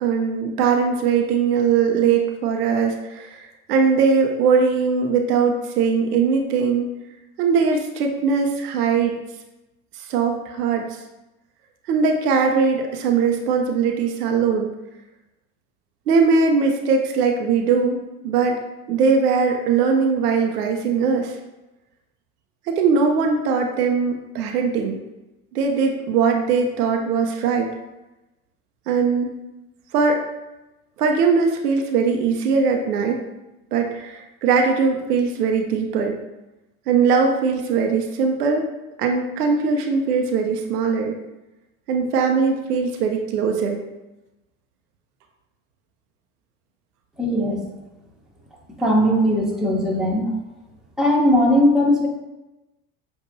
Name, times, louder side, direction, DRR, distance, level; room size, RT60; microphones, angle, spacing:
voice 1, 0.0-6.9 7.4-9.2 10.1-10.8 11.9-14.7 16.1-18.6 18.9-21.4 22.7-25.0 25.5-27.7 28.9-29.4 29.9-30.2 31.0-33.2 33.7-36.2 36.9-38.6 39.0-41.2 41.9-43.8, right 5 dB, 85° right, 3 dB, 0.7 m, -20 dB
voice 2, 47.2-47.6 48.8-50.3 51.0-52.1, equal, ahead, -4 dB, 1.2 m, -18 dB
6.9 x 2.6 x 2.6 m, 1.0 s
hypercardioid pair, 75°, 45 cm